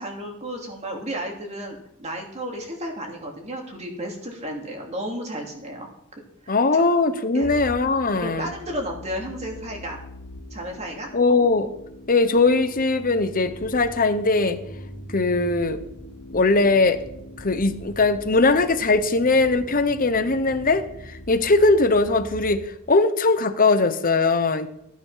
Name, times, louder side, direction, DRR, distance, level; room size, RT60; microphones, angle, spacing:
voice 1, 0.0-5.9 6.4-6.8 7.3-7.5 8.2-10.0 10.5-11.1, equal, 30° right, 1 dB, 2.8 m, -33 dB
voice 2, 6.5-8.5 11.1-11.7 12.1-14.6 15.1-15.8 16.3-17.0 17.4-22.6 22.9-24.7, left 3 dB, 40° left, 10 dB, 1.1 m, -20 dB
sound 1, 7.4-22.6, equal, 70° left, 2.2 m, -41 dB
15.5 x 9.8 x 5.8 m, 0.77 s
head